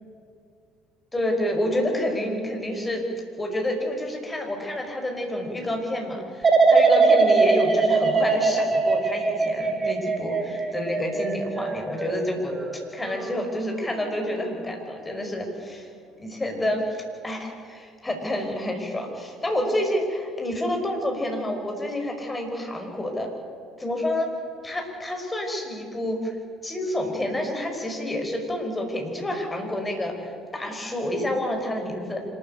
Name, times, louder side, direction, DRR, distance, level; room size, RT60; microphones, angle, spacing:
voice 1, 1.1-3.1 3.4-12.5 12.9-15.9 16.2-23.3 23.8-24.3 24.6-26.4 26.6-32.2, left 1 dB, 15° left, 2 dB, 5.3 m, -28 dB
sound 1, 6.4-13.4 13.8-14.2, right 4 dB, 30° right, 2.7 m, -22 dB
26.0 x 13.5 x 9.2 m, 2.3 s
figure-of-eight pair, 55°, 0 cm